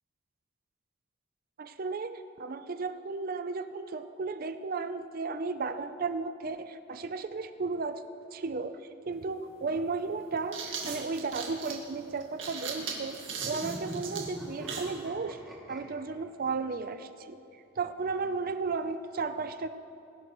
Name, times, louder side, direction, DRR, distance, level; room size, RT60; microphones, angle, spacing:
voice 1, 1.6-8.0 8.3-8.8 9.1-13.2 13.5-15.4 15.7-17.4 17.8-19.7, right 4 dB, 45° right, 10 dB, 0.5 m, -34 dB
sound 1, 9.1-9.2 10.2-15.0, right 5 dB, 75° right, 1.9 m, -38 dB
sound 2, 13.4-15.8, equal, ahead, 2.3 m, -42 dB
22.0 x 11.0 x 3.0 m, 2.7 s
head